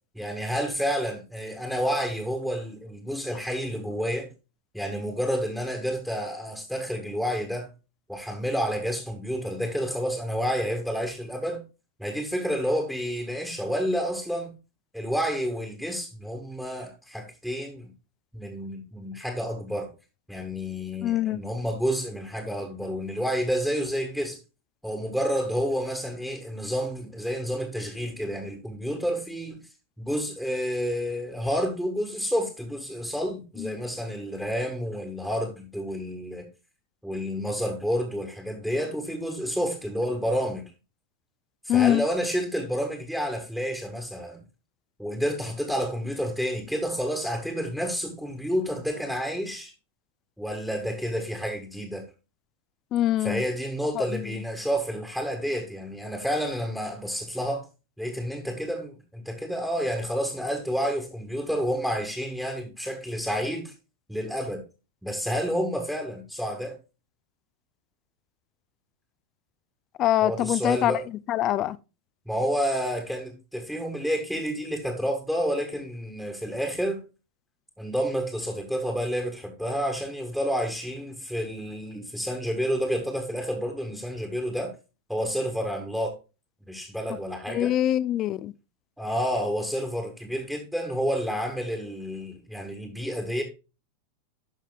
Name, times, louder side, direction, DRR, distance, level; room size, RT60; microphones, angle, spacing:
voice 1, 0.1-4.3 4.7-7.7 8.1-11.6 12.0-14.5 14.9-17.9 18.3-19.9 20.3-24.4 24.8-29.6 30.0-36.4 37.0-40.7 41.6-44.4 45.0-49.7 50.4-52.0 53.2-57.7 58.0-63.7 64.1-64.6 65.0-66.8 70.2-71.0 72.3-77.0 77.8-84.8 85.1-86.2 86.7-87.7 89.0-93.4, equal, ahead, 1.4 m, -29 dB
voice 2, 21.0-21.5 33.6-33.8 41.7-42.0 52.9-53.4 53.9-54.4 70.0-71.8 87.5-88.5, left 12 dB, 35° left, 0.4 m, -24 dB
12.0 x 5.6 x 2.3 m
figure-of-eight pair, 90°, 0 cm